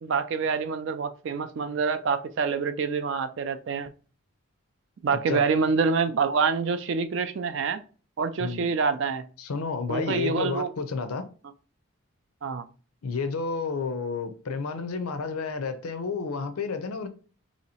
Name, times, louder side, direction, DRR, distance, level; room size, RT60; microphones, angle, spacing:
voice 1, 0.0-3.9 5.0-7.8 8.2-9.2 9.9-10.7 12.4-12.7, right 5 dB, 55° right, 0.3 m, -26 dB
voice 2, 8.4-8.7 9.4-11.2 13.0-17.1, left 4 dB, 85° left, 0.5 m, -31 dB
3.0 x 2.8 x 4.1 m
head